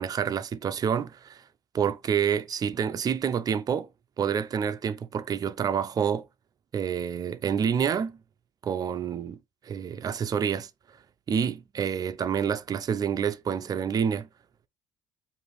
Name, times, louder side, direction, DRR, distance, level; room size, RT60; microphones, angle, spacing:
voice 1, 0.0-1.4 1.7-3.9 4.2-6.3 6.7-8.2 8.6-9.4 9.6-10.7 11.3-14.3, right 7 dB, 35° right, 0.5 m, -28 dB
4.9 x 2.6 x 3.3 m
cardioid pair, 115°, 11 cm